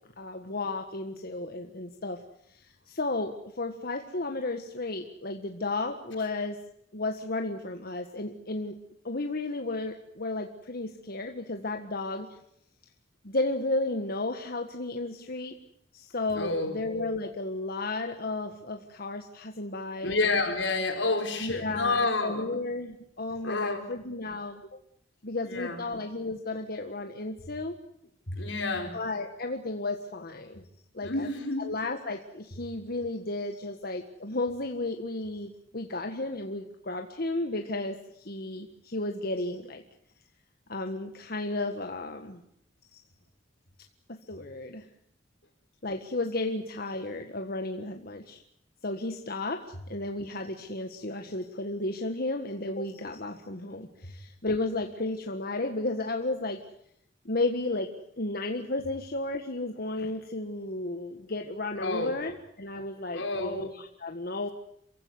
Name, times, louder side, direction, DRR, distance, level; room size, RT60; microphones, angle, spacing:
voice 1, 0.2-2.2 2.5-6.6 6.9-8.8 9.0-12.3 13.2-15.6 15.9-20.2 21.4-24.6 25.2-27.7 28.9-30.6 30.9-31.3 31.6-39.8 40.7-42.4 42.9-43.0 44.1-44.9 45.8-48.4 48.8-56.6 57.3-57.9 58.2-64.5, left 2 dB, 55° left, 5 dB, 1.7 m, -33 dB
voice 2, 16.4-16.8 20.0-22.6 23.4-23.9 25.4-25.8 28.3-29.0 31.0-31.7 61.8-62.1 63.1-63.6, left 3 dB, 80° left, 5 dB, 5.0 m, -29 dB
27.5 x 16.5 x 9.6 m, 0.74 s
head